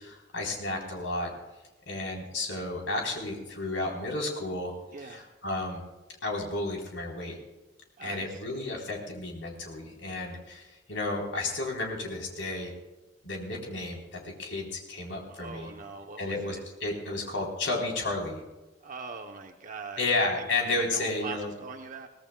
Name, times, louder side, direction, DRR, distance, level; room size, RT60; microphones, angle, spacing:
voice 1, 0.0-1.3 1.9-4.7 5.0-5.8 6.2-7.4 8.0-12.7 13.2-15.7 16.2-18.4 20.0-21.5, left 2 dB, 90° left, 0 dB, 3.7 m, -32 dB
voice 2, 4.9-5.3 8.0-8.6 15.3-16.6 18.8-20.0 20.4-22.1, right 4 dB, 45° right, 4 dB, 0.8 m, -42 dB
22.5 x 18.0 x 2.3 m, 1.1 s
head